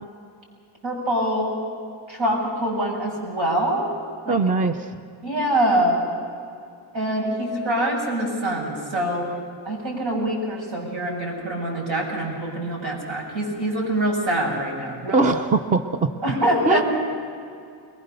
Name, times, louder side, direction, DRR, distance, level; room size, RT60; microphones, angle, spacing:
voice 1, 0.8-1.5 2.1-3.9 4.2-4.4 5.2-6.0 6.9-9.3 9.6-15.2 16.2-16.8, right 1 dB, 70° right, -2 dB, 7.2 m, -24 dB
voice 2, 4.3-4.9 15.1-16.1 16.7-16.8, right 3 dB, 15° right, 9 dB, 0.5 m, -21 dB
22.5 x 20.5 x 6.8 m, 2.4 s
cardioid pair, 155°, 47 cm